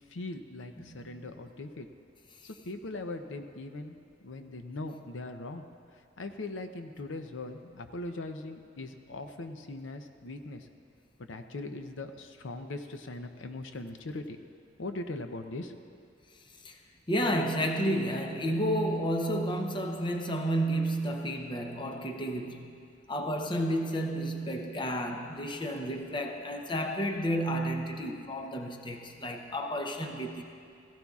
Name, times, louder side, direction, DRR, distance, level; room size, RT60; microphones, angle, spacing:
voice 1, 0.1-1.9 2.4-3.9 4.2-5.7 6.2-10.7 11.2-14.4 14.8-16.1, left 2 dB, 80° left, 7 dB, 0.6 m, -40 dB
voice 2, 0.8-1.2 16.6-16.7 17.1-22.7 23.1-30.4, equal, 25° left, 4 dB, 0.7 m, -31 dB
17.0 x 15.0 x 2.4 m, 2.3 s
head